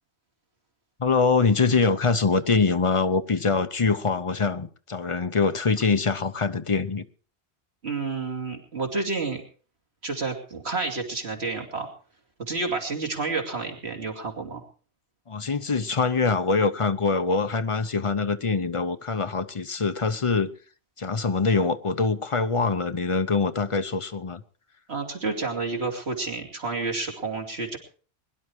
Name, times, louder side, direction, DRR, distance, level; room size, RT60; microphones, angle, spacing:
voice 1, 1.0-7.1 15.3-20.5 21.0-24.4, left 4 dB, 35° left, 0.7 m, -24 dB
voice 2, 7.8-9.4 10.0-11.9 12.4-14.6 24.9-27.8, right 3 dB, 80° right, 2.8 m, -30 dB
21.5 x 11.0 x 4.6 m
omnidirectional pair, 1.1 m